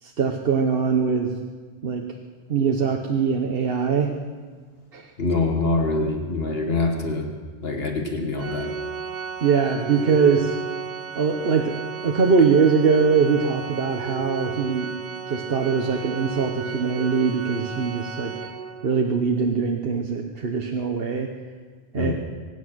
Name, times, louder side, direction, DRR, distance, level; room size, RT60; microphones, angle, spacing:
voice 1, 0.0-1.3 1.8-2.1 2.5-4.1 4.9-5.1 9.4-10.5 11.1-11.7 12.0-14.9 15.3-18.3 18.8-21.3 21.9-22.1, right 5 dB, 65° right, 2 dB, 1.2 m, -22 dB
voice 2, 5.2-7.3 7.6-8.7 22.0-22.1, left 3 dB, 70° left, 2 dB, 1.7 m, -24 dB
Organ, 8.4-19.1, right 6 dB, 50° right, 0.7 m, -33 dB
24.0 x 9.3 x 6.3 m, 1.6 s
omnidirectional pair, 1.1 m